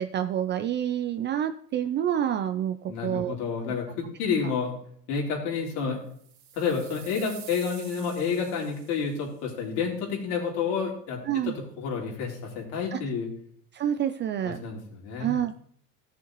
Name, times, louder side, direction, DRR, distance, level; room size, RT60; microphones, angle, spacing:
voice 1, 0.0-3.3 4.4-4.5 11.2-11.5 12.9-13.0 13.7-14.6 15.2-15.6, right 10 dB, 25° right, 9 dB, 0.3 m, -28 dB
voice 2, 2.9-4.8 5.1-6.0 6.5-11.2 11.8-13.3 14.6-15.4, left 5 dB, 70° left, -1 dB, 3.5 m, -29 dB
sound 1, 6.1-9.3, right 8 dB, 45° right, 2.2 m, -48 dB
15.0 x 6.7 x 3.0 m, 0.62 s
hypercardioid pair, 85°, 48 cm